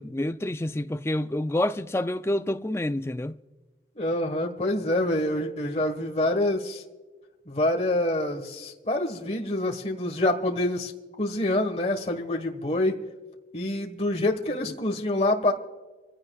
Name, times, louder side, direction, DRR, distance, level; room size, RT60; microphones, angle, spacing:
voice 1, 0.0-3.4, left 1 dB, 15° left, 0.4 m, -28 dB
voice 2, 3.9-6.8 7.5-10.9 11.2-13.0 13.5-15.5, left 1 dB, 35° left, 1.4 m, -26 dB
26.0 x 16.0 x 2.4 m
head